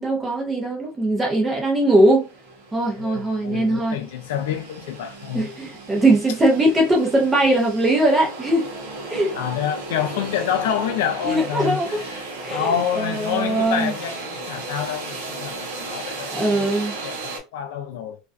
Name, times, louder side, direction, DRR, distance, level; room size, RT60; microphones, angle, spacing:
voice 1, 0.0-2.3 2.7-4.0 5.3-8.7 9.1-9.3 11.2-12.0 12.4-13.9 16.3-16.9, right 1 dB, 10° right, 0.6 m, -20 dB
sound 1, 1.4-1.5 1.8-17.4, right 2 dB, 75° right, 0.9 m, -35 dB
voice 2, 3.0-5.5 9.3-18.2, left 9 dB, 75° left, 0.4 m, -28 dB
2.4 x 2.2 x 2.3 m
supercardioid pair, 170°, 0 cm